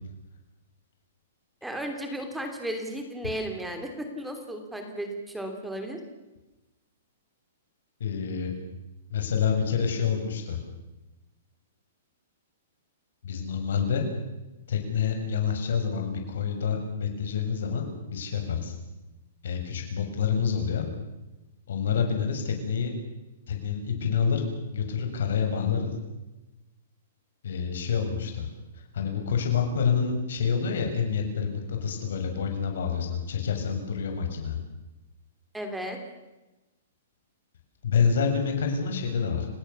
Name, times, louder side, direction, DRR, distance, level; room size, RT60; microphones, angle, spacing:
voice 1, 1.6-6.0 35.5-36.0, right 1 dB, 5° right, 4 dB, 3.2 m, -34 dB
voice 2, 8.0-8.5 9.1-10.6 13.2-14.0 14.7-18.7 19.4-20.9 21.7-22.9 23.5-24.5 24.7-25.9 27.4-28.5 28.9-34.6 37.8-39.5, left 6 dB, 70° left, 4 dB, 7.1 m, -27 dB
30.0 x 19.0 x 7.2 m, 1.0 s
hypercardioid pair, 165°, 0 cm